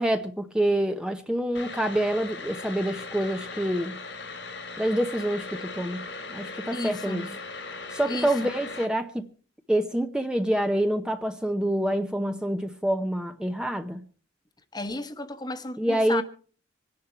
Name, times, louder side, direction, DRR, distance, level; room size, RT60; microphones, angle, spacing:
voice 1, 0.0-4.0 4.8-6.0 6.3-7.3 7.9-9.3 9.7-14.0 15.8-16.2, right 1 dB, 5° right, 0.8 m, -26 dB
sound 1, 1.5-8.9, left 3 dB, 85° left, 3.2 m, -38 dB
voice 2, 6.7-7.3 8.1-8.3 14.7-16.2, left 2 dB, 25° left, 1.1 m, -33 dB
25.5 x 10.5 x 4.4 m
head